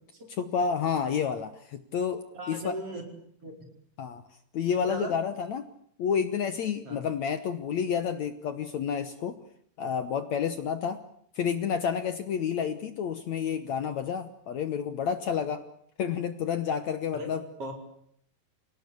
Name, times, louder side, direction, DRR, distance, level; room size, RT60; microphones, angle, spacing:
voice 1, 0.3-2.7 4.0-4.2 4.5-5.7 6.0-9.4 9.8-11.0 11.3-15.6 16.0-17.4, left 7 dB, 70° left, 10 dB, 1.7 m, -30 dB
voice 2, 2.3-3.0 3.4-3.6 4.8-5.1 6.8-7.1 17.1-17.3 17.6-17.7, right 1 dB, 35° right, 3 dB, 5.6 m, -37 dB
28.5 x 18.5 x 8.5 m, 0.68 s
omnidirectional pair, 4.8 m